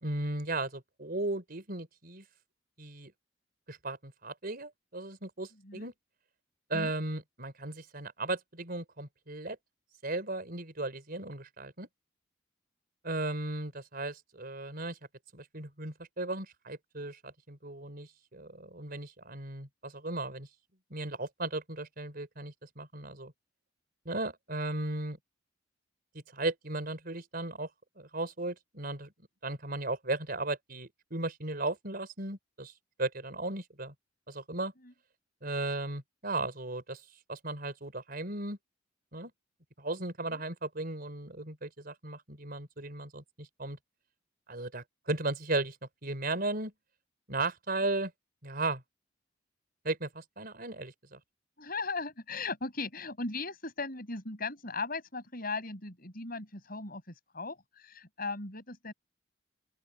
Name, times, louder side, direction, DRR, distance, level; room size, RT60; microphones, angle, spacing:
voice 1, 0.0-2.2 2.8-3.1 3.7-5.9 6.7-9.6 10.0-11.9 13.0-15.0 15.3-20.5 20.9-23.3 24.0-25.2 26.3-27.7 28.0-29.1 29.4-32.7 33.0-33.9 34.3-34.7 35.4-37.0 37.3-38.6 39.1-39.3 39.8-43.8 44.5-45.8 46.0-46.7 47.3-48.1 48.4-48.8 49.8-51.2, right 2 dB, 50° right, 4.4 m, -36 dB
voice 2, 51.6-58.9, left 3 dB, 50° left, 7.1 m, -38 dB
open air
head